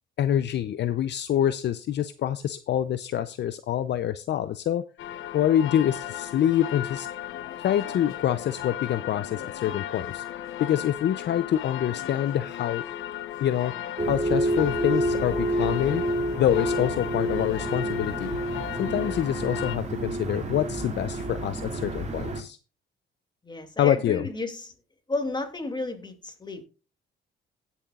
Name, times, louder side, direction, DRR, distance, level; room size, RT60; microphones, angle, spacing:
voice 1, 0.2-4.8 5.3-7.1 7.6-10.2 10.6-12.8 13.4-13.7 14.0-16.0 16.4-18.4 18.8-22.6 23.8-24.3, left 11 dB, 60° left, 13 dB, 0.6 m, -26 dB
sound 1, 5.0-19.8, left 11 dB, 80° left, 1.0 m, -36 dB
sound 2, 14.0-22.4, right 1 dB, 35° right, 2.4 m, -29 dB
voice 2, 23.4-24.7 25.1-26.7, left 2 dB, 20° left, 6 dB, 2.5 m, -32 dB
17.5 x 7.1 x 2.4 m, 0.33 s
cardioid pair, 90°, 20 cm